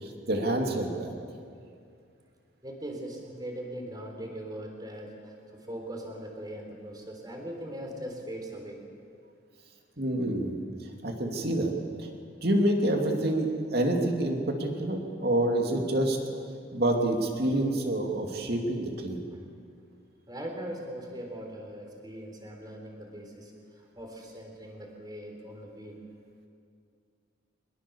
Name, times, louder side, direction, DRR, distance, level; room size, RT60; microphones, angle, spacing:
voice 1, 0.0-1.1 10.0-10.5 11.0-11.7 12.0-12.1 12.4-16.2 16.7-19.2, right 1 dB, 50° right, 2 dB, 2.8 m, -27 dB
voice 2, 2.6-8.8 19.3-19.4 20.3-26.0, right 1 dB, 20° right, 1 dB, 3.9 m, -40 dB
23.5 x 21.5 x 7.1 m, 2.4 s
head